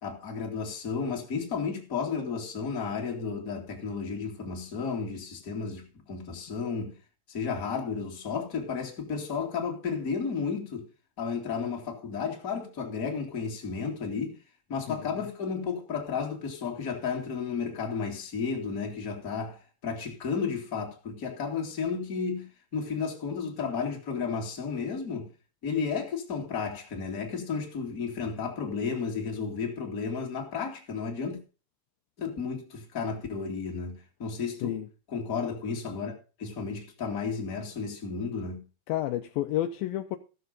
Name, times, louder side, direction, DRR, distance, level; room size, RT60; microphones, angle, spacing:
voice 1, 0.0-6.9 7.3-10.9 11.2-14.4 14.7-22.4 22.7-25.3 25.6-31.4 32.2-34.8 35.1-38.6, left 5 dB, 30° left, 1.9 m, -33 dB
voice 2, 38.9-40.2, left 13 dB, 85° left, 2.0 m, -30 dB
15.0 x 6.8 x 5.2 m
omnidirectional pair, 5.0 m